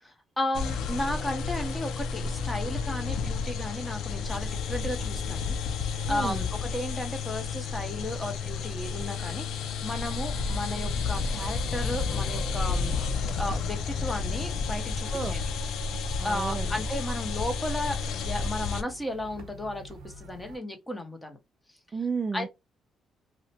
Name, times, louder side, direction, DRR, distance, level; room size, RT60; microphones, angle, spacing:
voice 1, 0.0-13.0 13.3-15.4 16.2-21.4 22.3-22.5, left 1 dB, 15° left, 0.8 m, -34 dB
sound 1, 0.5-18.8, left 5 dB, 80° left, 0.5 m, -31 dB
sound 2, 4.3-20.6, right 2 dB, 90° right, 0.7 m, -46 dB
voice 2, 6.1-6.4 15.1-15.4 16.2-16.7 21.9-22.5, right 5 dB, 30° right, 0.3 m, -32 dB
2.7 x 2.1 x 2.8 m
cardioid pair, 90°, 0 cm